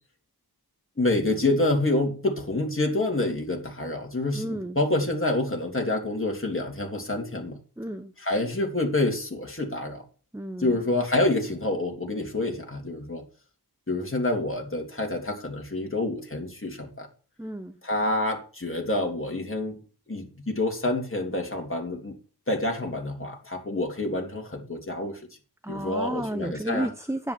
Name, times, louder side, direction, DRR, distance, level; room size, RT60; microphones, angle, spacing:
voice 1, 1.0-7.6 8.2-10.0 10.6-13.2 13.9-17.1 17.8-19.8 20.1-22.1 22.5-25.2 25.7-26.9, left 2 dB, 30° left, 1 dB, 3.2 m, -27 dB
voice 2, 4.3-4.8 7.8-8.1 10.3-10.8 17.4-17.8 25.6-27.3, right 1 dB, 5° right, 9 dB, 1.0 m, -32 dB
10.5 x 9.2 x 6.2 m, 0.37 s
wide cardioid pair, 65°, 40 cm